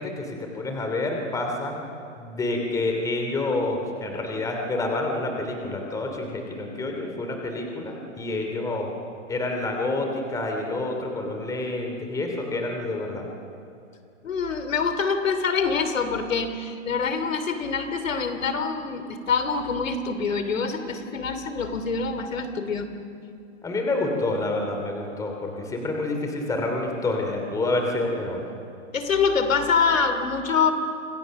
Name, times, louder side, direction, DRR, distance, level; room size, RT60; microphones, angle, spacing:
voice 1, 0.0-1.8 2.2-8.9 9.3-13.3 23.6-28.4, left 2 dB, 10° left, 2 dB, 2.9 m, -28 dB
voice 2, 14.2-22.9 28.9-30.7, left 5 dB, 90° left, 9 dB, 3.0 m, -25 dB
29.5 x 26.5 x 6.5 m, 2.6 s
hypercardioid pair, 155°, 38 cm